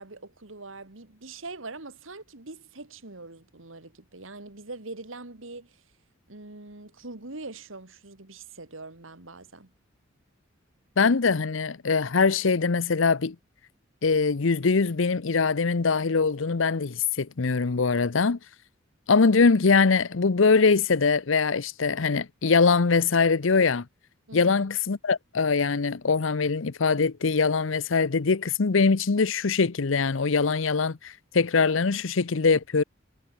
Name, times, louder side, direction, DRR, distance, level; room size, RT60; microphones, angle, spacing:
voice 1, 0.0-5.8 6.3-9.7 24.3-24.6 31.9-32.0, right 3 dB, 75° right, 2.5 m, -43 dB
voice 2, 11.0-13.4 14.0-18.4 19.1-23.8 24.3-32.8, left 4 dB, 70° left, 0.7 m, -22 dB
head